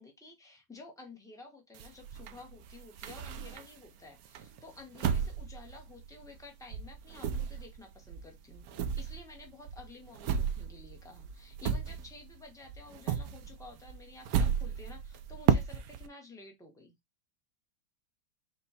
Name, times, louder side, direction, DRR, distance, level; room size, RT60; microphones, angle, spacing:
voice 1, 0.0-8.6 9.0-16.9, left 3 dB, 5° left, 0.7 m, -52 dB
sound 1, 1.7-3.9 4.3-6.5 6.7-12.4 12.7-16.1, right 7 dB, 70° right, 0.8 m, -33 dB
5.3 x 2.3 x 4.1 m
omnidirectional pair, 2.1 m